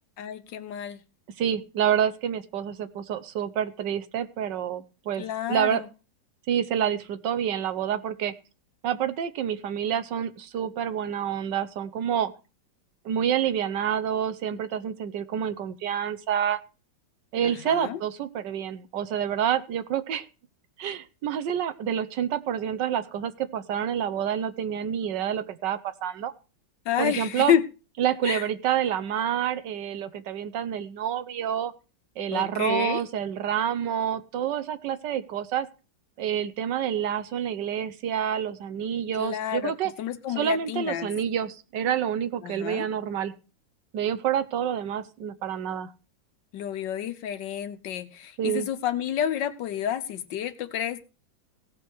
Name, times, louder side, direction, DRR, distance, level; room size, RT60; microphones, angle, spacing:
voice 1, 0.2-1.0 5.2-5.9 17.4-18.0 26.8-27.6 28.2-28.5 32.3-33.0 39.1-39.7 40.0-41.1 42.4-42.8 46.5-51.0, left 10 dB, 75° left, 11 dB, 1.5 m, -29 dB
voice 2, 1.4-5.8 6.5-8.3 8.8-12.3 13.0-16.6 17.3-20.2 20.8-26.3 27.0-27.6 28.0-31.7 32.2-35.7 36.2-39.9 40.4-43.3 43.9-45.9 48.4-48.7, right 9 dB, 75° right, 12 dB, 1.4 m, -28 dB
17.0 x 6.1 x 4.6 m, 0.32 s
omnidirectional pair, 2.0 m